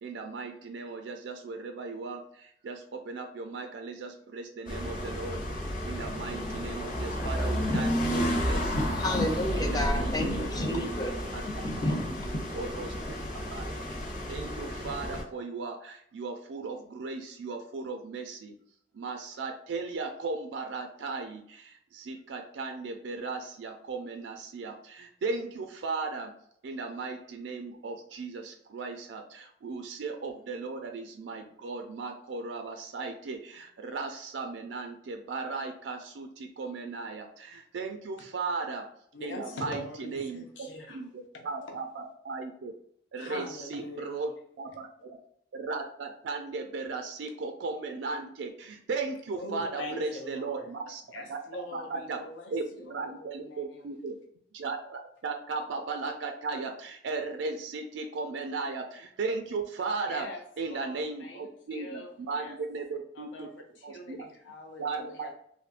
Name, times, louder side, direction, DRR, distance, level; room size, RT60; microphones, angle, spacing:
voice 1, 0.0-5.4 5.8-8.9 9.5-10.1 10.7-10.9 11.3-11.4 12.3-12.9 13.5-18.6 18.9-26.3 26.6-38.9 39.2-42.7 43.1-45.2 45.5-51.0 51.3-51.4 51.7-52.2 52.5-54.2 54.5-60.3 60.6-63.5 63.8-64.3 64.8-65.3, right 4 dB, 80° right, 0.4 m, -36 dB
sound 1, 4.7-15.2, equal, 45° left, 0.8 m, -32 dB
voice 2, 8.6-11.1 11.6-12.4, left 1 dB, 20° left, 0.4 m, -31 dB
voice 3, 39.1-41.1 41.3-41.4 43.2-44.3 49.3-50.7 51.1-53.9 60.1-62.1 62.4-62.6 63.1-63.5 63.8-65.3, left 2 dB, 85° left, 0.8 m, -43 dB
3.5 x 2.6 x 2.4 m
head